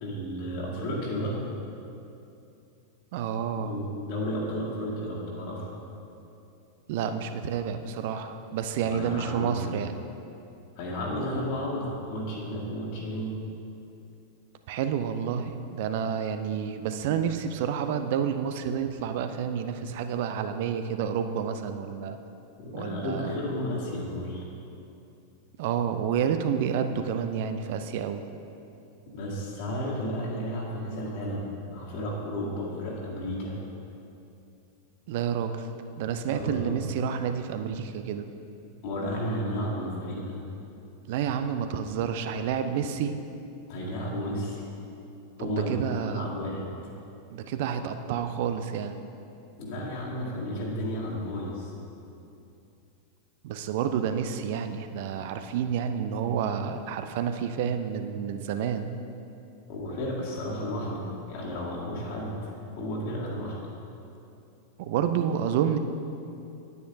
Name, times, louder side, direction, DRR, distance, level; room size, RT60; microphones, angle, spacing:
voice 1, 0.0-1.4 3.6-5.7 8.8-9.6 10.8-13.3 22.6-24.4 29.1-31.4 31.7-33.6 36.3-36.8 38.8-40.4 43.7-44.6 45.4-46.9 49.6-51.7 59.7-62.5 62.8-63.6, equal, 50° left, -5 dB, 1.9 m, -33 dB
voice 2, 3.1-3.7 6.9-10.0 14.7-22.2 22.7-23.4 25.6-28.2 35.1-35.6 36.0-38.3 41.1-43.2 45.4-46.3 47.3-49.0 53.4-58.9 64.8-65.8, right 8 dB, 50° right, 9 dB, 0.5 m, -29 dB
9.6 x 9.4 x 2.6 m, 2.7 s
figure-of-eight pair, 90°, 0 cm